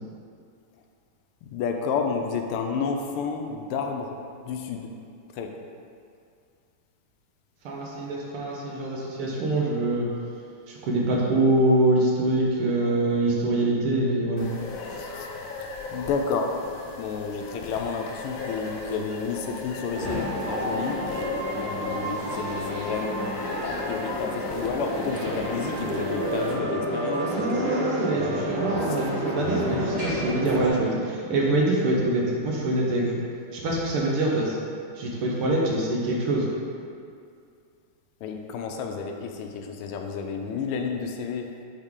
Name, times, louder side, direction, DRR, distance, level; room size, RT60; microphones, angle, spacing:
voice 1, 1.4-4.2 4.4-4.9 5.3-5.6 14.9-15.3 15.6-16.6 17.0-21.0 21.5-27.7 28.8-29.0 38.2-41.5, left 5 dB, 85° left, 4 dB, 1.5 m, -31 dB
voice 2, 7.6-10.1 10.7-14.5 27.3-33.2 33.5-34.6 35.0-36.5, right 1 dB, 80° right, -3 dB, 1.9 m, -24 dB
sound 1, 14.4-26.5, left 3 dB, 70° left, 1.4 m, -36 dB
sound 2, 19.9-30.7, equal, 40° right, 1.0 m, -30 dB
7.4 x 4.0 x 3.7 m, 2.4 s
omnidirectional pair, 2.4 m